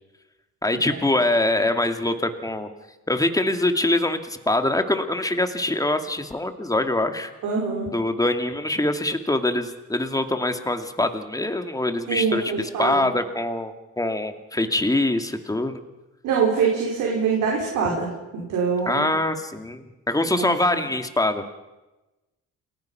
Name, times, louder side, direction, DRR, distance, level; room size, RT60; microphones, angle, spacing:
voice 1, 0.6-2.7 3.1-7.3 7.9-15.8 18.9-21.5, left 2 dB, 10° left, 7 dB, 2.5 m, -24 dB
voice 2, 7.4-7.9 12.1-13.1 16.2-19.1 20.4-20.8, right 5 dB, 85° right, -3 dB, 5.8 m, -24 dB
29.0 x 20.0 x 5.9 m, 1.1 s
cardioid pair, 90°, 30 cm